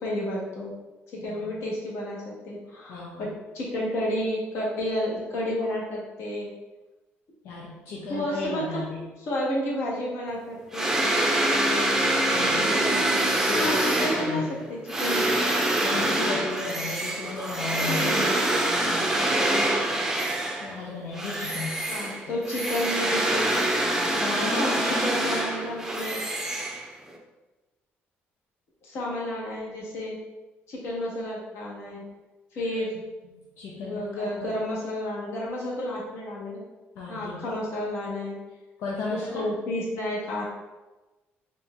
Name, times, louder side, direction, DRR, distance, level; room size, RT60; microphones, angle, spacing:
voice 1, 0.0-0.7 1.1-6.5 7.9-8.8 9.3-11.0 12.4-13.3 13.6-14.4 14.7-15.3 18.0-18.4 21.9-23.5 24.5-24.8 25.0-26.2 28.8-30.2 30.7-32.0 32.5-32.9 33.8-36.6 37.1-38.4 39.1-40.4, left 1 dB, 75° left, -4 dB, 1.4 m, -31 dB
voice 2, 1.2-1.6 2.9-3.3 7.4-9.0 12.3-12.7 13.4-14.6 15.8-18.3 18.9-19.2 20.6-21.9 24.2-25.2 32.6-32.8 33.3-34.5 37.0-37.5 38.8-39.5, left 3 dB, 90° left, -4 dB, 0.6 m, -35 dB
sound 1, 10.7-20.8 21.1-27.2, right 1 dB, 10° right, 0.5 m, -25 dB
4.3 x 2.6 x 3.4 m, 1.1 s
cardioid pair, 130°, 4 cm